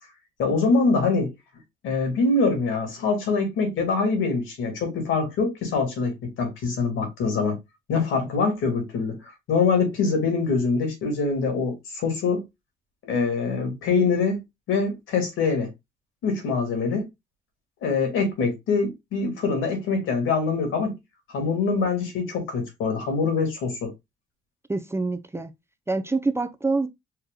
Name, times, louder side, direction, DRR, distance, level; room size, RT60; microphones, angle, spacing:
voice 1, 0.4-1.3 1.8-7.6 7.9-9.2 9.5-12.5 13.0-14.4 14.7-15.7 16.2-17.1 17.8-20.9 21.3-23.9, left 4 dB, 85° left, 2.4 m, -24 dB
voice 2, 24.7-25.5 25.9-26.9, right 3 dB, 15° right, 0.5 m, -26 dB
4.6 x 3.0 x 3.7 m
cardioid pair, 90°, 20 cm